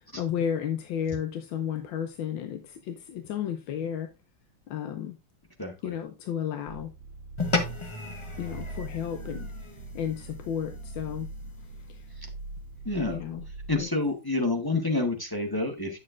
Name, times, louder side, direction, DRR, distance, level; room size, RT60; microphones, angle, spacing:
voice 1, 0.0-4.1 4.7-5.1 5.8-6.9 8.4-11.3 11.9-12.1 13.1-13.4 13.8-13.9, left 9 dB, 85° left, 1.5 m, -33 dB
sound 1, 6.7-13.8, right 2 dB, 75° right, 1.2 m, -42 dB
sound 2, 7.4-12.0, left 3 dB, 35° left, 0.5 m, -35 dB
voice 2, 12.8-13.2 13.7-16.0, left 2 dB, 15° left, 0.8 m, -28 dB
9.7 x 6.7 x 2.5 m
omnidirectional pair, 2.0 m